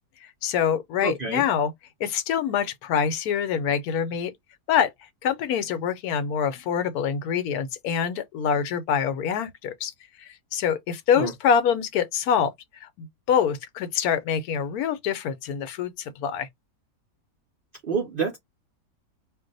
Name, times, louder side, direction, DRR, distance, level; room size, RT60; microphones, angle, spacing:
voice 1, 0.4-1.7 2.0-4.3 4.7-4.9 5.2-9.9 10.2-12.5 12.8-16.5, left 7 dB, 75° left, 1.1 m, -25 dB
voice 2, 1.0-1.5 11.1-11.3 17.8-18.4, right 5 dB, 60° right, 0.6 m, -28 dB
2.5 x 2.1 x 3.8 m
omnidirectional pair, 1.7 m